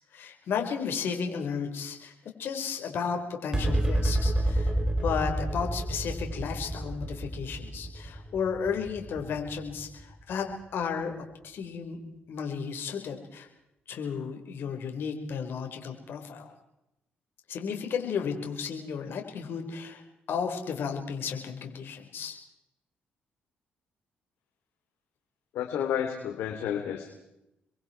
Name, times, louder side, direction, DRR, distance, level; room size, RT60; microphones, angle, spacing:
voice 1, 0.1-2.1 2.4-4.7 5.0-10.4 10.7-11.1 11.4-12.0 12.3-13.5 13.9-16.5 17.5-20.0 20.3-22.4, left 6 dB, 70° left, 4 dB, 4.9 m, -33 dB
sound 1, 3.5-10.2, right 1 dB, 20° right, 3.9 m, -29 dB
voice 2, 25.5-27.1, left 9 dB, 90° left, 4 dB, 3.2 m, -31 dB
29.5 x 23.0 x 4.7 m, 0.86 s
cardioid pair, 80°, 4 cm